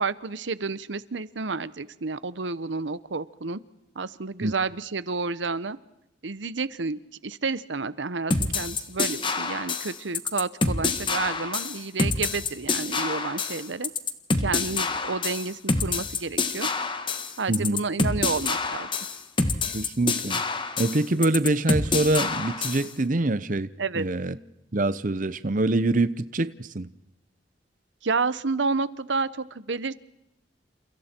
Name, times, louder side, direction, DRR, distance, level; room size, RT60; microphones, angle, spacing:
voice 1, 0.0-3.6 3.9-5.8 6.2-13.9 14.4-16.7 17.4-18.9 23.8-24.1 28.0-29.9, right 4 dB, 85° right, 1.0 m, -30 dB
sound 1, 8.3-22.9, left 3 dB, 25° left, 1.5 m, -27 dB
voice 2, 17.5-17.8 19.7-20.4 20.8-23.7 23.9-24.4 24.7-26.9, right 2 dB, 45° right, 0.8 m, -25 dB
30.0 x 28.5 x 4.5 m
head